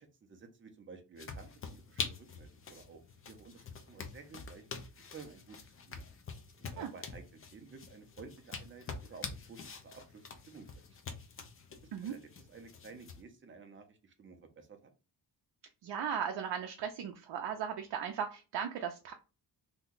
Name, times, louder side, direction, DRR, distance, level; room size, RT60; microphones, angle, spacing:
voice 1, 0.0-3.0 3.3-4.6 5.1-5.6 5.9-6.1 6.7-7.2 7.5-10.7 11.1-11.2 12.0-14.9, right 5 dB, 30° right, 5 dB, 0.5 m, -53 dB
sound 1, 1.2-13.2, left 5 dB, 35° left, 0.4 m, -46 dB
voice 2, 15.8-19.1, right 8 dB, 70° right, 4 dB, 0.6 m, -37 dB
2.7 x 2.2 x 3.7 m, 0.31 s
wide cardioid pair, 180°, 42 cm